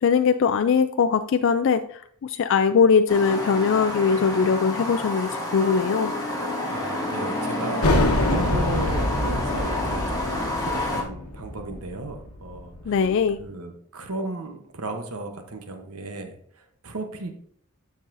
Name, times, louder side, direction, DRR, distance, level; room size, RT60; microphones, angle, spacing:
voice 1, 0.0-6.1 12.9-13.4, left 6 dB, 60° left, 9 dB, 0.3 m, -21 dB
sound 1, 3.1-11.0, left 1 dB, 15° left, 1.7 m, -29 dB
voice 2, 6.7-7.9 8.2-13.0 13.4-17.3, right 2 dB, 85° right, 6 dB, 1.0 m, -35 dB
sound 2, 7.8-13.1, left 1 dB, 85° left, 1.1 m, -25 dB
12.0 x 5.5 x 2.6 m, 0.63 s
head